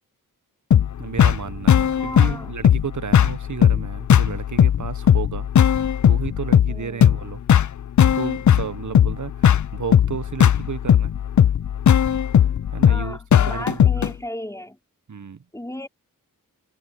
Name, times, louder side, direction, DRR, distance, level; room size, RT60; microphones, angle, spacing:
sound 1, 0.7-14.1, left 9 dB, 55° left, 0.5 m, -17 dB
voice 1, 1.0-5.5 6.1-7.4 8.2-11.1 12.7-14.1 15.1-15.4, right 6 dB, 55° right, 0.9 m, -32 dB
sound 2, 1.1-3.7, right 3 dB, 25° right, 1.2 m, -43 dB
voice 2, 2.0-2.5 6.7-7.1 12.9-14.8 15.5-15.9, left 1 dB, 10° left, 4.2 m, -35 dB
wide cardioid pair, 80°, 35 cm